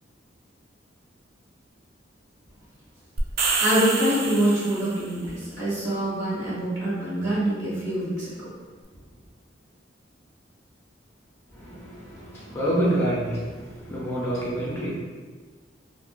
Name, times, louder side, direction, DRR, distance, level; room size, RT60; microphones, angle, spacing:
sound 1, 3.2-5.1, right 4 dB, 50° right, 0.3 m, -27 dB
voice 1, 3.6-8.5, right 1 dB, 70° right, -8 dB, 1.2 m, -25 dB
voice 2, 11.6-13.5 13.9-14.9, right 1 dB, 15° left, -7 dB, 0.5 m, -27 dB
2.5 x 2.3 x 2.2 m, 1.4 s
head